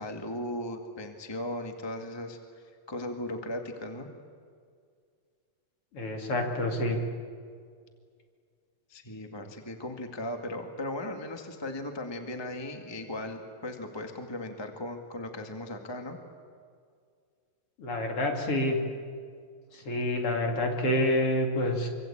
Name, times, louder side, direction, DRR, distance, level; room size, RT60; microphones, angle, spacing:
voice 1, 0.0-2.4 2.9-4.1 8.9-16.2, left 1 dB, 15° left, 4 dB, 0.9 m, -37 dB
voice 2, 5.9-7.0 17.8-18.8 19.7-21.9, left 1 dB, 40° left, 2 dB, 3.3 m, -28 dB
25.5 x 25.0 x 8.7 m, 2.1 s
omnidirectional pair, 4.2 m